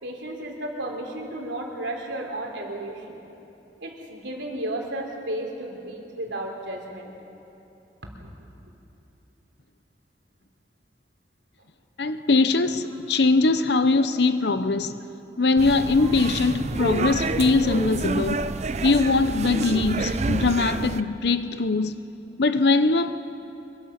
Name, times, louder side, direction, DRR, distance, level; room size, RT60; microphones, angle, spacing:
voice 1, 0.0-3.2 3.8-7.1 8.2-8.3 16.0-16.1 19.6-19.7, right 1 dB, 90° right, 3.5 m, -33 dB
voice 2, 12.0-14.9 15.4-18.5 18.8-22.0 22.4-23.1, left 3 dB, 70° left, 0.8 m, -21 dB
sound 1, 15.6-21.0, right 3 dB, 35° right, 0.5 m, -28 dB
24.5 x 23.0 x 6.0 m
head